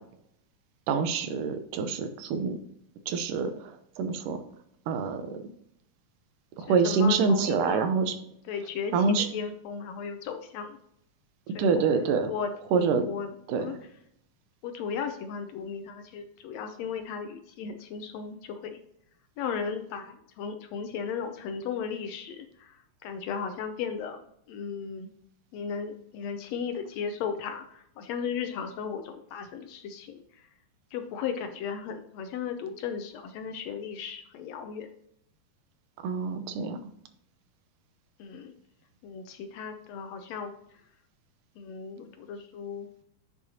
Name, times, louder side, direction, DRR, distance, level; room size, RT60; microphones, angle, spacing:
voice 1, 0.9-2.6 3.1-4.4 4.9-5.4 6.6-8.2 8.9-9.3 11.5-12.3 12.7-13.1 13.5-13.7 36.0-36.8, right 5 dB, 80° right, 9 dB, 2.4 m, -26 dB
voice 2, 6.6-7.9 8.4-10.8 11.5-11.7 12.3-13.8 14.6-18.8 19.4-25.1 25.5-30.5 30.9-34.9 38.2-38.5 39.0-40.8 41.6-42.9, left 6 dB, 80° left, 7 dB, 1.6 m, -36 dB
8.5 x 6.6 x 2.8 m, 0.73 s
omnidirectional pair, 3.7 m